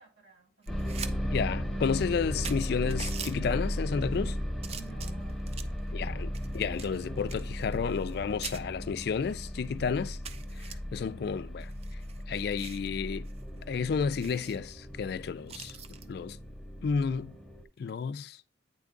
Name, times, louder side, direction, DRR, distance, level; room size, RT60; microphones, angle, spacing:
voice 1, 0.0-1.2 4.7-6.5 10.7-11.2, right 5 dB, 85° right, 4.0 m, -58 dB
sound 1, 0.6-1.1 1.5-1.6 2.1-2.2 2.4-3.3 4.0-4.3 4.6-5.8 6.3-8.2 8.4-8.6 9.2-9.3 9.6-9.7 10.2-10.7 11.6-12.9 13.3-13.4 13.7-13.8 14.2-14.6 15.5-16.1 17.8-18.0, right 7 dB, 35° right, 0.4 m, -43 dB
sound 2, 0.7-17.6, equal, ahead, 0.8 m, -36 dB
voice 2, 1.2-4.4 5.9-6.3 6.5-10.1 10.6-11.7 12.3-13.3 13.7-15.8 16.1-16.4 16.8-17.3 17.8-18.4, left 6 dB, 60° left, 0.3 m, -31 dB
8.9 x 3.5 x 3.8 m
head